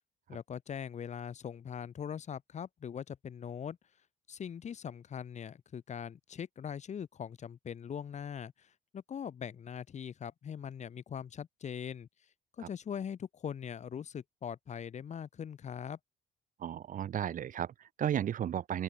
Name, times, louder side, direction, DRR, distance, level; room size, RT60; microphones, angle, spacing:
voice 1, 0.3-3.8 4.3-12.1 12.6-16.0, left 8 dB, 45° left, 2.9 m, -41 dB
voice 2, 16.6-18.8, right 10 dB, 50° right, 2.4 m, -34 dB
open air
cardioid pair, 110°, 17 cm